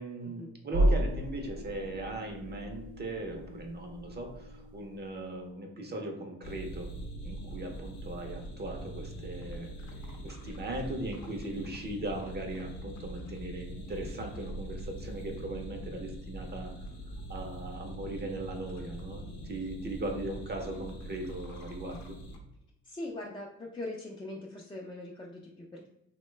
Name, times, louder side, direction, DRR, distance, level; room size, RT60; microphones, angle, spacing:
voice 1, 0.0-6.9 7.2-9.7 10.2-16.7 17.3-22.2, right 2 dB, 35° right, 3 dB, 0.6 m, -39 dB
sound 1, 0.7-5.4, right 1 dB, 90° right, 0.7 m, -33 dB
sound 2, 6.4-22.4, right 1 dB, 70° left, 0.7 m, -43 dB
voice 2, 22.8-25.9, left 2 dB, 15° left, -3 dB, 0.4 m, -41 dB
2.9 x 2.2 x 3.1 m, 0.85 s
cardioid pair, 90°, 30 cm